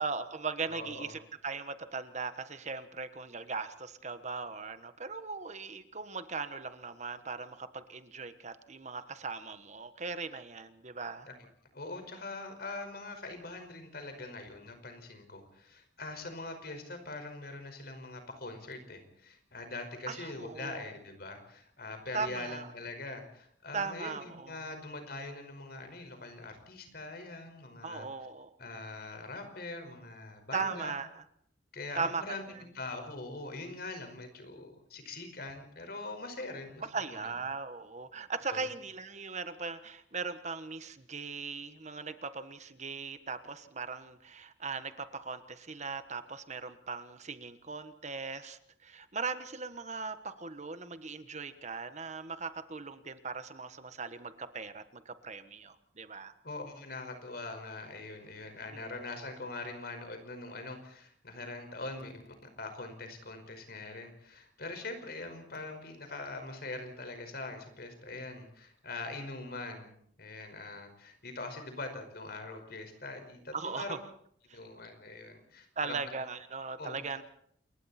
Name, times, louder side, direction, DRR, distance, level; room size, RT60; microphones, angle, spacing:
voice 1, 0.0-11.3 20.1-20.9 22.1-22.7 23.7-24.6 27.8-28.5 30.5-31.2 31.9-32.2 36.8-56.3 58.7-58.8 73.5-74.0 74.5-74.6 75.8-77.2, right 4 dB, 40° right, 11 dB, 1.4 m, -39 dB
voice 2, 0.7-1.1 11.3-11.4 11.7-28.1 28.6-30.9 31.7-32.5 32.7-36.9 37.1-37.3 38.5-38.6 56.4-74.0 74.5-76.0 76.8-77.0, left 2 dB, 60° left, 6 dB, 5.2 m, -43 dB
28.0 x 22.5 x 4.4 m, 0.66 s
head